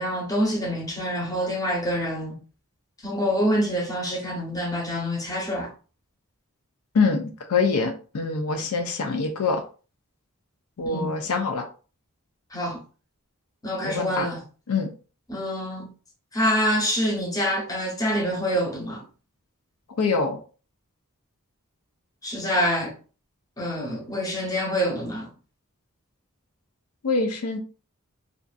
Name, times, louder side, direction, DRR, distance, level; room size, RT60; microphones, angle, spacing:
voice 1, 0.0-2.4 3.0-5.7 10.9-11.1 12.5-12.8 13.6-14.4 15.3-15.9 16.3-19.0 22.2-22.9 23.6-25.3, equal, 15° left, 0.8 m, -26 dB
voice 2, 6.9-9.6 10.8-11.6 13.8-14.3 14.7-14.9 20.0-20.4 27.0-27.6, left 4 dB, 85° left, 0.5 m, -24 dB
2.5 x 2.4 x 2.3 m
head